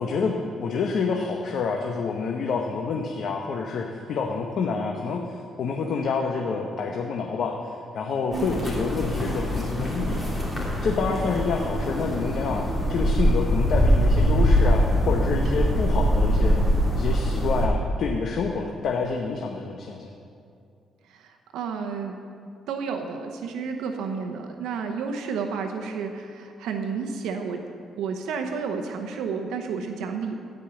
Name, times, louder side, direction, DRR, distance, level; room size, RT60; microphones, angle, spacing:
voice 1, 0.0-16.6 17.0-20.1, left 5 dB, 65° left, 2 dB, 1.0 m, -28 dB
sound 1, 8.3-17.7, equal, ahead, 3.2 m, -23 dB
voice 2, 21.1-22.2 22.7-27.6 28.0-30.4, right 5 dB, 85° right, 4 dB, 0.9 m, -31 dB
15.5 x 5.4 x 7.8 m, 2.4 s
cardioid pair, 90°, 0 cm